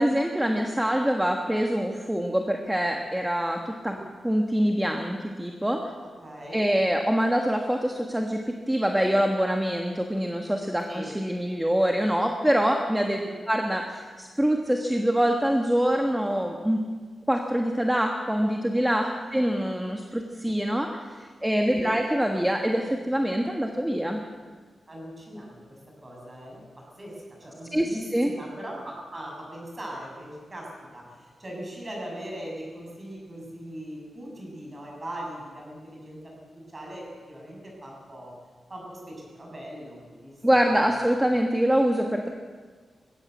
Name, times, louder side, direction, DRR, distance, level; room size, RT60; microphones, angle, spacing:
voice 1, 0.0-3.9 4.2-5.8 6.5-13.2 13.5-16.8 17.3-24.2 27.7-28.3 40.4-42.3, equal, 5° right, 2 dB, 1.4 m, -25 dB
voice 2, 6.2-6.6 10.9-11.1 13.2-13.4 19.2-19.4 21.7-22.0 23.4-23.5 24.9-26.6 27.0-36.3 36.7-38.3 38.7-40.6 41.3-41.4, right 1 dB, 25° right, -2 dB, 7.2 m, -40 dB
20.5 x 16.5 x 8.3 m, 1.5 s
wide cardioid pair, 145°, 0 cm